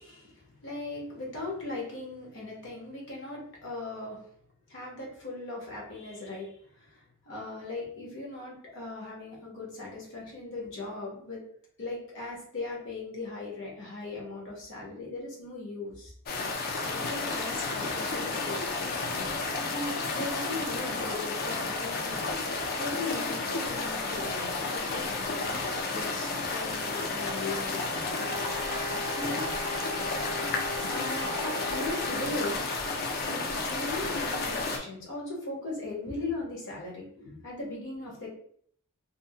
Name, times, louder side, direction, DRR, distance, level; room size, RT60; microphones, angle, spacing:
voice 1, 0.0-4.2 4.7-11.4 11.8-16.1 16.8-19.3 19.7-28.4 29.1-29.5 30.8-32.6 33.2-38.3, left 2 dB, 60° left, -3 dB, 0.9 m, -39 dB
sound 1, 16.3-34.8, left 3 dB, 45° left, 0.4 m, -32 dB
sound 2, 28.1-32.3, right 1 dB, 60° right, 0.4 m, -38 dB
2.6 x 2.0 x 2.6 m, 0.62 s
head